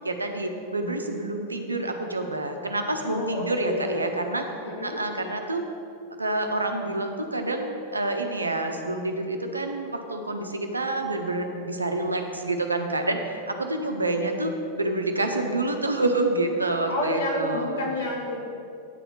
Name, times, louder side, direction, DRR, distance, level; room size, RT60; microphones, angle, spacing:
voice 1, 0.0-4.4 4.8-5.6 6.2-17.9, right 2 dB, 80° right, 5 dB, 0.7 m, -28 dB
voice 2, 3.1-4.1 4.6-5.0 16.9-18.4, left 1 dB, 65° left, -2 dB, 1.7 m, -29 dB
9.0 x 4.2 x 7.1 m, 2.6 s
figure-of-eight pair, 90°, 0 cm